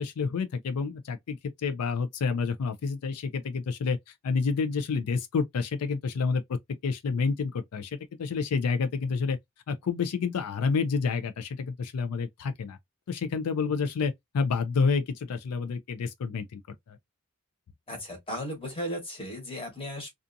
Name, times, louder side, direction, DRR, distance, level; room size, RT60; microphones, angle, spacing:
voice 1, 0.0-9.4 9.7-12.8 13.1-16.6 16.9-17.0, left 5 dB, 90° left, 0.4 m, -29 dB
voice 2, 17.9-20.1, equal, 25° left, 1.1 m, -36 dB
2.6 x 2.4 x 2.5 m
head